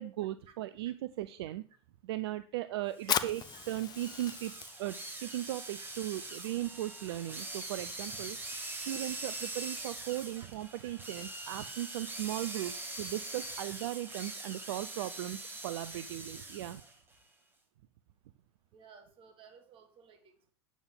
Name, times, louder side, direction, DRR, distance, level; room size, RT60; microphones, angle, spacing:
voice 1, 0.0-1.6 2.0-4.5 4.8-8.4 8.8-15.4 15.6-16.8, right 14 dB, 65° right, 13 dB, 0.5 m, -37 dB
Fire, 2.9-10.2, left 9 dB, 30° left, 0.6 m, -41 dB
sound 1, 3.0-16.9, right 2 dB, 15° right, 1.7 m, -43 dB
voice 2, 14.9-15.3 16.3-16.4 18.7-20.5, right 6 dB, 40° right, 7 dB, 1.7 m, -57 dB
8.6 x 7.1 x 3.8 m, 0.42 s
hypercardioid pair, 95°, 14 cm